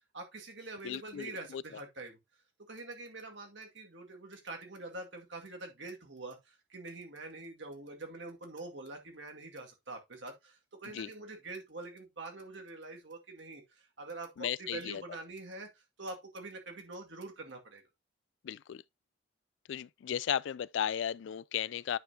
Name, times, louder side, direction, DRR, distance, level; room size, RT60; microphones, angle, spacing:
voice 1, 0.1-2.2 2.7-17.8, right 2 dB, 70° right, 2.1 m, -45 dB
voice 2, 0.8-1.6 10.9-11.1 14.4-15.0 18.4-18.8 19.7-22.0, left 9 dB, 70° left, 0.3 m, -35 dB
9.2 x 5.5 x 2.7 m
head